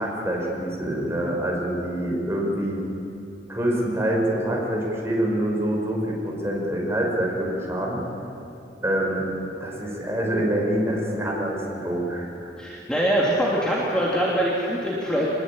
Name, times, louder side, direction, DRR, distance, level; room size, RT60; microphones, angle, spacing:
voice 1, 0.0-2.8 3.5-8.0 8.8-9.3 9.6-12.5, right 1 dB, 15° right, -2 dB, 5.9 m, -26 dB
voice 2, 12.6-15.3, equal, 5° left, -5 dB, 2.9 m, -23 dB
25.5 x 21.0 x 9.0 m, 2.7 s
head